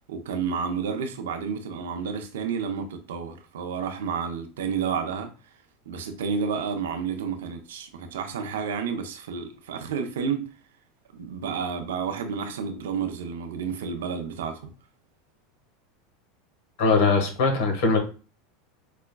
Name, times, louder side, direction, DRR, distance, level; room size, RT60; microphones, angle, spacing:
voice 1, 0.1-5.3 5.9-10.5 11.1-14.7, right 6 dB, 80° right, 0.6 m, -30 dB
voice 2, 16.8-18.0, left 4 dB, 70° left, 1.2 m, -21 dB
4.8 x 2.2 x 2.2 m
hypercardioid pair, 100°, 0 cm